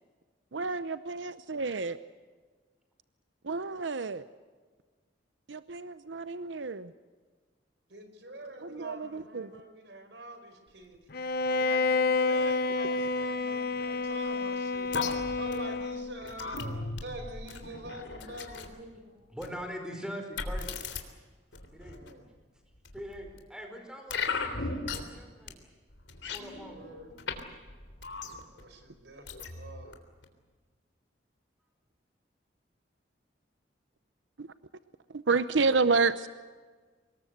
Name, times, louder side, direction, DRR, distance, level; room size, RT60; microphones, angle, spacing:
voice 1, 0.5-2.0 3.4-4.2 5.5-6.9 8.6-9.5 34.4-34.5 35.1-36.3, right 4 dB, 85° right, 13 dB, 0.8 m, -29 dB
voice 2, 7.9-11.0 11.5-19.2 21.8-22.3 26.6-27.1 28.5-30.0, right 1 dB, 70° right, 7 dB, 5.0 m, -46 dB
Bowed string instrument, 11.1-16.2, left 3 dB, 55° left, 1.0 m, -29 dB
sound 1, 14.9-18.7 19.4-19.6 20.4-21.0 21.5-22.1 22.8-23.4 24.1-25.2 25.5-25.6 25.9-27.4 27.7-28.6 29.3-29.9 30.2-30.3, left 4 dB, 85° left, 3.4 m, -37 dB
voice 3, 19.3-20.7 21.7-22.0 22.9-25.6 26.3-26.9, equal, 5° right, 4 dB, 4.8 m, -42 dB
25.0 x 21.0 x 8.0 m, 1.4 s
head